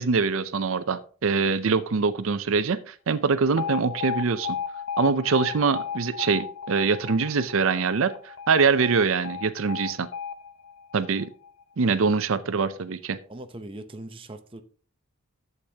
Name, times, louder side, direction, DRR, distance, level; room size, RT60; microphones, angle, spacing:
voice 1, 0.0-4.6 5.0-10.1 10.9-11.3 11.8-13.2, right 5 dB, 65° right, 0.5 m, -24 dB
Alarm, 3.6-11.6, left 7 dB, 55° left, 0.8 m, -35 dB
voice 2, 13.3-14.6, right 1 dB, 25° right, 0.7 m, -40 dB
12.0 x 7.9 x 2.8 m
head